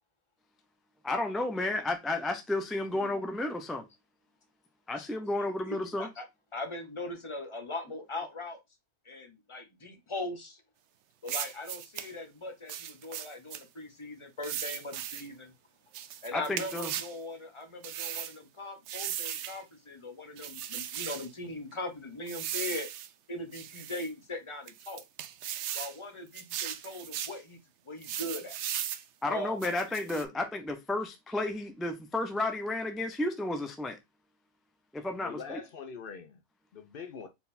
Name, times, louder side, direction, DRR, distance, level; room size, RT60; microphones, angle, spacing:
voice 1, 1.0-3.9 4.9-6.1 16.3-16.9 29.2-34.0 34.9-35.6, left 2 dB, ahead, 0.4 m, -32 dB
voice 2, 5.0-6.3 6.5-8.6 9.0-10.6 11.2-15.5 16.2-22.9 23.3-25.0 25.7-27.6 27.9-28.6 29.3-29.9, left 2 dB, 30° left, 1.0 m, -40 dB
sound 1, 11.3-12.1 12.7-13.6 14.4-15.3 15.9-17.1 17.8-18.3 18.9-19.6 20.4-21.3 22.3-23.1 23.5-24.1 24.7-26.0 26.3-27.4 28.0-29.0 29.6-30.2, right 10 dB, 90° right, 0.9 m, -37 dB
voice 3, 35.2-36.4 36.7-37.3, left 6 dB, 60° left, 0.8 m, -43 dB
4.4 x 3.9 x 2.6 m
omnidirectional pair, 1.1 m